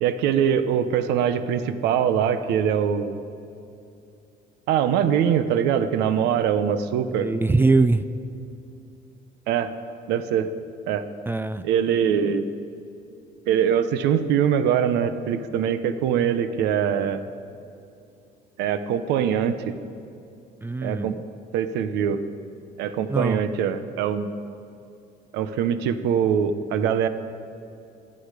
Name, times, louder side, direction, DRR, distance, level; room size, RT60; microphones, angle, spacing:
voice 1, 0.0-3.2 4.7-7.3 9.5-9.7 10.1-10.5 10.9-11.0 11.6-12.5 13.5-17.2 18.6-19.7 20.8-21.1 21.5-22.2 22.8-24.3 25.3-27.1, right 8 dB, 90° right, 11 dB, 0.9 m, -23 dB
voice 2, 7.1-8.0 11.3-11.7 20.6-21.2 23.1-23.4, right 3 dB, 15° right, 12 dB, 0.4 m, -22 dB
24.5 x 8.7 x 4.9 m, 2.7 s
cardioid pair, 110°, 17 cm